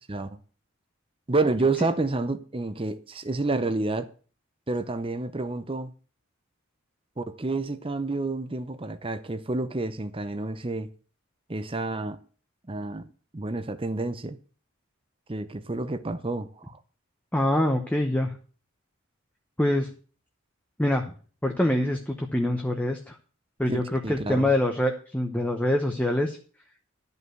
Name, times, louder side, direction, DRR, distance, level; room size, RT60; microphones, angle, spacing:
voice 1, 0.1-0.4 1.3-4.1 4.7-5.9 7.2-10.9 11.5-12.2 12.7-14.4 15.3-16.8 23.7-24.5, right 2 dB, 25° right, 0.7 m, -29 dB
voice 2, 17.3-18.4 19.6-19.9 20.8-21.1 21.4-23.2 23.6-26.4, left 1 dB, 5° left, 0.9 m, -25 dB
12.0 x 5.5 x 7.7 m
head